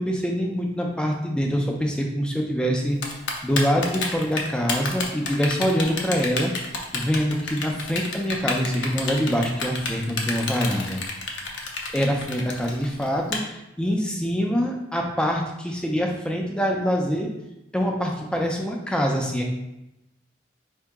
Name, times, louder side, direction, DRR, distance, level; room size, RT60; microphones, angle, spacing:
voice 1, 0.0-3.0 3.4-6.5 6.9-11.0 11.9-17.3 17.7-19.5, equal, 5° left, 1 dB, 0.5 m, -25 dB
Typing, 3.0-13.4, left 4 dB, 80° left, 0.7 m, -29 dB
4.7 x 2.8 x 3.5 m, 0.91 s
head